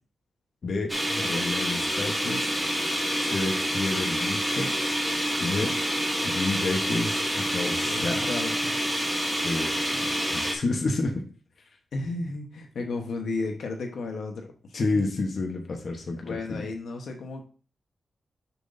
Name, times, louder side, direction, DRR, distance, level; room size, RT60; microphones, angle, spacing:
voice 1, 0.6-2.5 3.2-4.7 5.4-5.8 6.2-8.3 9.4-11.2 14.7-16.7, left 3 dB, 45° left, 2 dB, 1.1 m, -30 dB
sound 1, 0.9-10.5, equal, 5° right, 1.1 m, -27 dB
voice 2, 7.8-8.8 11.9-14.5 16.2-17.4, left 3 dB, 65° left, 3 dB, 1.1 m, -33 dB
6.7 x 6.1 x 2.7 m, 0.37 s
wide cardioid pair, 180°, 0 cm